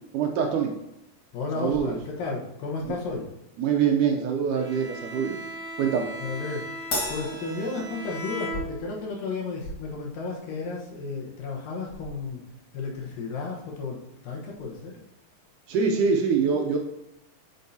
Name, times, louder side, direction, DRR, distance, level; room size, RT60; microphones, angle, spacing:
voice 1, 0.1-0.7 1.6-2.0 3.6-5.4 5.8-6.1 15.7-16.8, right 6 dB, 75° right, 3 dB, 2.0 m, -24 dB
voice 2, 1.3-3.3 6.2-6.8 7.1-12.4 12.7-14.9, left 3 dB, 75° left, -1 dB, 2.8 m, -33 dB
Bowed string instrument, 4.5-9.2, right 1 dB, 50° right, 1.7 m, -38 dB
Crash cymbal, 6.9-8.6, left 1 dB, 40° left, 1.3 m, -33 dB
8.2 x 6.5 x 2.7 m, 0.82 s
omnidirectional pair, 4.0 m